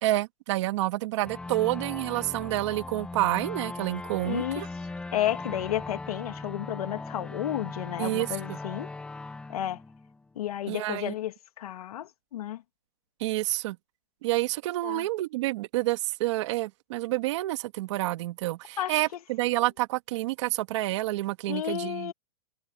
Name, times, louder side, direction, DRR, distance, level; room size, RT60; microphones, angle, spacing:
voice 1, 0.0-4.7 8.0-8.6 10.7-11.1 13.2-13.8 14.2-22.1, right 17 dB, 50° right, 2.0 m, -29 dB
sound 1, 1.2-10.6, left 3 dB, 5° left, 1.0 m, -39 dB
voice 2, 4.2-4.6 5.1-8.9 9.5-9.8 10.4-12.6 14.8-15.0 18.8-19.0 21.5-22.1, left 12 dB, 70° left, 2.1 m, -32 dB
hypercardioid pair, 160°, 20 cm